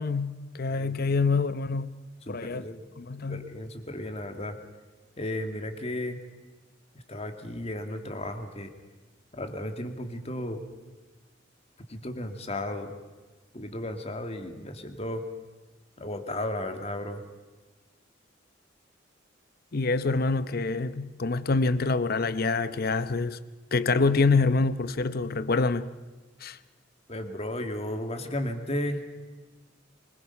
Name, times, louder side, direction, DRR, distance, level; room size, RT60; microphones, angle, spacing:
voice 1, 0.0-2.0 2.3-2.6 3.0-3.5 19.7-23.4 23.7-25.9 26.4-26.6, left 3 dB, 50° left, 0.8 m, -26 dB
voice 2, 2.3-2.8 3.3-4.6 5.2-6.2 7.1-8.7 9.3-10.6 11.9-12.9 13.5-15.2 16.0-17.2 27.1-29.0, left 1 dB, 35° left, 2.0 m, -34 dB
24.5 x 21.5 x 5.7 m
head